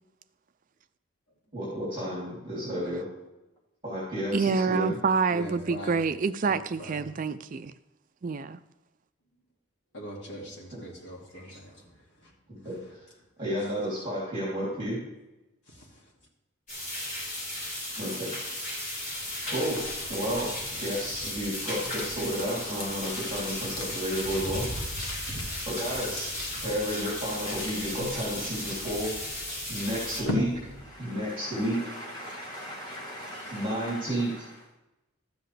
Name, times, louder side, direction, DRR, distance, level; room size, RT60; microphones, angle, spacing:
voice 1, 1.5-3.1 3.8-5.0 10.7-10.8 12.5-13.0 13.4-15.0 18.0-18.3 19.5-19.8 20.1-20.5 20.8-24.7 25.7-26.3 26.6-29.1 29.7-30.5 31.0-31.8 33.5-34.3, equal, 25° right, 3.1 m, -31 dB
voice 2, 4.3-7.7 8.2-8.6, right 5 dB, 40° right, 0.4 m, -27 dB
voice 3, 5.3-6.0 6.4-7.2 9.9-12.3 15.7-15.9 33.3-33.6, equal, 60° left, 2.4 m, -43 dB
sound 1, 16.7-30.2, left 1 dB, 35° left, 3.9 m, -35 dB
sound 2, 19.1-31.2, left 2 dB, 80° left, 1.5 m, -41 dB
voice 4, 30.9-34.4, equal, 20° left, 2.2 m, -41 dB
13.0 x 7.9 x 3.3 m
head